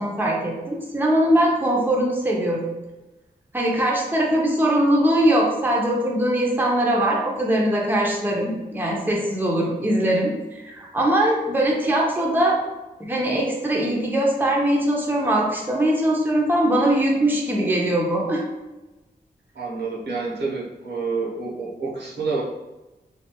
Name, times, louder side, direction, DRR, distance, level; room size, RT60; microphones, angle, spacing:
voice 1, 0.0-2.7 3.5-12.6 13.0-18.4, right 1 dB, 10° right, -3 dB, 0.6 m, -21 dB
voice 2, 19.5-22.4, right 4 dB, 90° right, -4 dB, 0.9 m, -28 dB
3.3 x 2.3 x 2.9 m, 1.1 s
wide cardioid pair, 110°, 17 cm